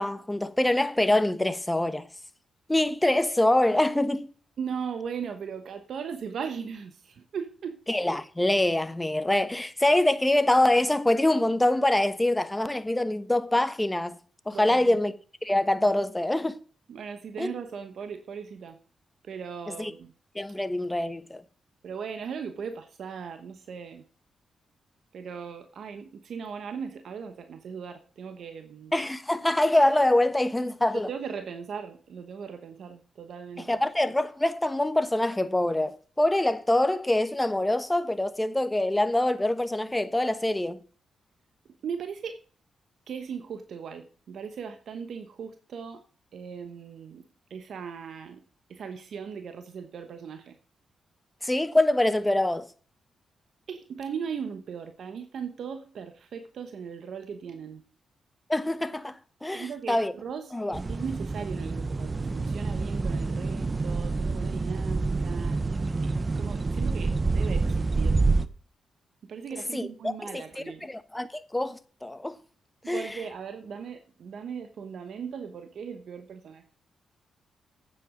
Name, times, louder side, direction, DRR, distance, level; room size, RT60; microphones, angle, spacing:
voice 1, 0.0-2.1 2.7-4.3 7.9-14.2 14.5-15.1 15.4-16.6 17.4-17.5 19.8-19.9 20.3-21.4 28.9-31.1 33.6-40.8 51.4-52.7 58.5-60.1 60.5-60.8 69.7-70.1 70.8-72.3 72.9-73.1, left 1 dB, 15° left, 1.1 m, -25 dB
voice 2, 4.6-7.8 14.5-15.0 16.9-18.8 19.2-20.1 21.8-24.0 25.1-28.9 30.9-33.8 41.8-42.4 43.1-46.0 46.3-48.4 48.7-50.6 53.7-57.8 59.5-60.5 60.9-65.6 66.0-68.2 69.2-70.9 72.8-76.7, right 6 dB, 70° right, 1.1 m, -38 dB
sound 1, 60.7-68.5, right 3 dB, 35° right, 0.9 m, -27 dB
8.9 x 7.8 x 5.0 m
supercardioid pair, 55°, 0 cm